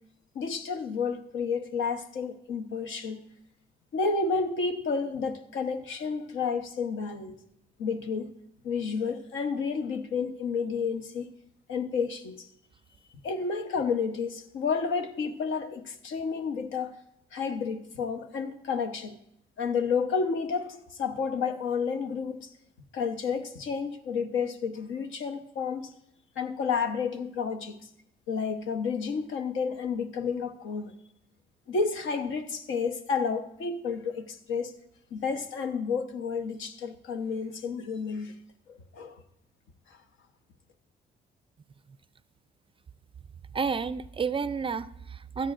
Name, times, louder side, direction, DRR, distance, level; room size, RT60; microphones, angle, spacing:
voice 1, 0.3-3.2 3.9-7.4 7.8-8.3 8.6-11.3 11.7-12.5 13.2-16.9 17.3-19.2 19.6-22.5 22.9-25.9 26.4-27.8 28.3-30.9 31.7-34.7 35.1-38.3 38.7-39.2 39.9-40.0, left 5 dB, 80° left, 1.0 m, -31 dB
voice 2, 43.5-45.5, right 5 dB, 25° right, 0.4 m, -30 dB
16.0 x 13.0 x 2.5 m
cardioid pair, 90°, 20 cm